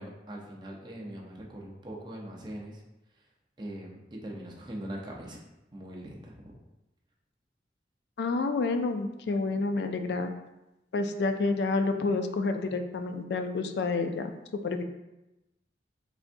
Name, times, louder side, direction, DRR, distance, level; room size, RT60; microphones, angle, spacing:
voice 1, 0.0-2.8 3.6-5.4 5.7-6.6, right 1 dB, 25° right, -1 dB, 0.6 m, -41 dB
voice 2, 8.2-10.3 10.9-14.8, left 3 dB, 70° left, 7 dB, 0.3 m, -29 dB
3.9 x 3.4 x 2.6 m, 0.96 s
head